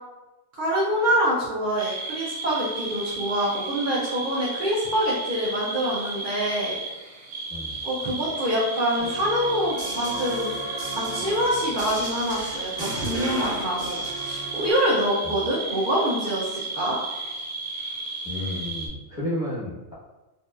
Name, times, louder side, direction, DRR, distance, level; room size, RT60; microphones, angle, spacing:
voice 1, 0.5-6.8 7.8-10.5 10.9-17.0, equal, 60° right, -6 dB, 0.5 m, -25 dB
sound 1, 1.8-18.9, right 3 dB, 85° right, 1.0 m, -33 dB
voice 2, 7.5-7.8 15.2-15.3 18.2-19.9, left 1 dB, 5° right, -9 dB, 0.9 m, -32 dB
sound 2, 9.0-14.7, right 1 dB, 30° right, 0.9 m, -35 dB
2.8 x 2.6 x 2.3 m, 1.1 s
omnidirectional pair, 1.4 m